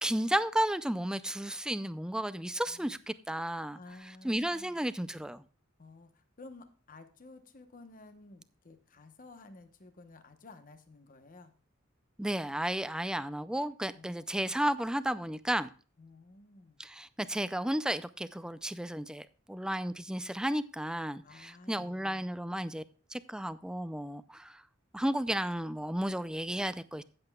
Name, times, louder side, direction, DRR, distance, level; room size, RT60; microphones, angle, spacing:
voice 1, 0.0-3.8 4.2-5.4 12.2-15.7 16.8-22.8 23.1-24.6 24.9-27.0, right 1 dB, 5° right, 0.4 m, -33 dB
voice 2, 2.5-3.0 3.7-4.8 5.8-11.5 13.9-14.5 16.0-16.8 21.2-22.2, left 3 dB, 40° left, 0.9 m, -53 dB
15.5 x 7.8 x 2.3 m
head